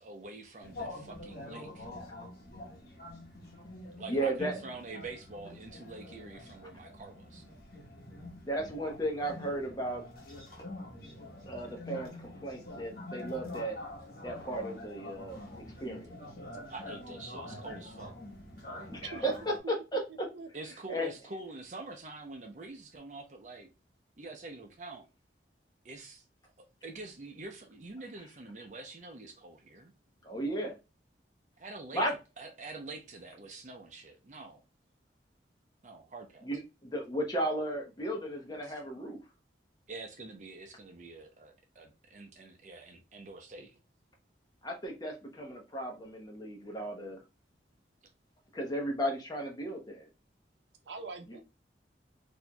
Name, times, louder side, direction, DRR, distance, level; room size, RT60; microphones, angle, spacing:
voice 1, 0.0-1.9 4.0-7.4 16.7-18.1 20.5-23.7 24.2-25.1 25.8-26.2 26.8-29.9 31.6-34.6 35.8-36.5 38.6-38.8 39.9-43.7, right 3 dB, 45° right, 0.6 m, -46 dB
sound 1, 0.6-19.6, left 1 dB, 55° left, 1.1 m, -46 dB
voice 2, 4.1-4.6 8.4-10.0 11.4-13.8 14.2-15.4 15.8-16.2 18.9-20.3 20.9-21.1 30.2-30.7 31.9-32.1 36.5-39.2 44.6-47.2 48.5-50.1, right 1 dB, 20° left, 0.9 m, -35 dB
voice 3, 19.0-19.7 20.1-20.7 50.9-51.4, right 4 dB, 90° right, 0.6 m, -45 dB
4.3 x 2.7 x 2.2 m
head